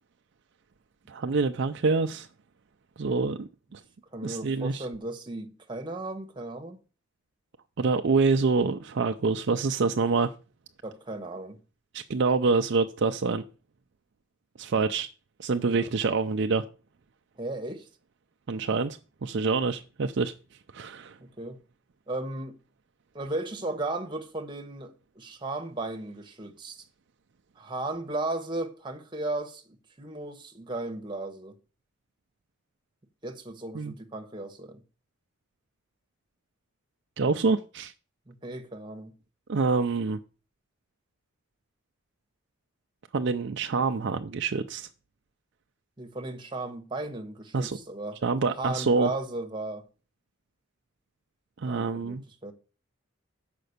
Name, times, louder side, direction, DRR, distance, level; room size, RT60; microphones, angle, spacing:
voice 1, 1.1-2.3 3.0-3.8 4.2-4.9 7.8-10.3 11.9-13.4 14.6-15.1 15.4-16.6 18.5-20.3 20.7-21.2 33.7-33.9 37.2-37.9 39.5-40.2 43.1-44.9 47.5-47.8 48.2-49.1 51.6-52.2, right 4 dB, 55° right, 0.4 m, -26 dB
voice 2, 4.1-6.8 10.8-11.6 15.7-15.9 17.4-17.9 21.2-21.6 22.1-22.5 23.1-26.8 27.6-31.6 33.2-34.8 38.3-39.1 46.0-48.2 48.6-49.9 51.6-52.5, right 2 dB, 20° right, 1.1 m, -35 dB
6.7 x 5.2 x 6.5 m
head